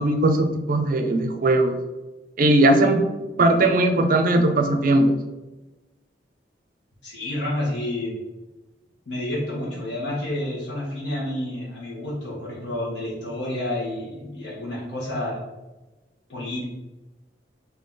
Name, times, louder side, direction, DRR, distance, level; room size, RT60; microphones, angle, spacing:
voice 1, 0.0-1.8 2.4-3.0 3.4-5.1, right 2 dB, 50° right, 5 dB, 0.5 m, -19 dB
voice 2, 7.0-8.1 9.1-15.4 16.3-16.6, left 1 dB, 70° left, -6 dB, 1.4 m, -29 dB
3.8 x 2.9 x 3.7 m, 1.1 s
head